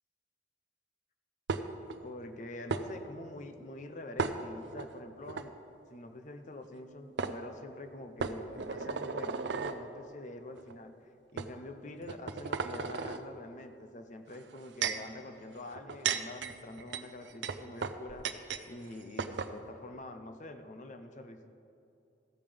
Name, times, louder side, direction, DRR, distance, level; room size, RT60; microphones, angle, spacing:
sound 1, 1.5-2.0 2.7-2.8 4.2-4.9 5.3-5.5 6.7-6.8 7.2-7.4 8.2-9.8 10.6-10.7 11.4-11.5 12.0-13.2 14.3-15.1 15.7-18.7 18.9-19.0 19.2-19.5, right 5 dB, 70° right, 0.5 m, -35 dB
voice 1, 2.0-5.6 5.9-10.9 11.3-18.3 18.6-21.5, left 2 dB, 40° left, 8 dB, 0.6 m, -46 dB
14.5 x 8.8 x 3.4 m, 2.7 s
head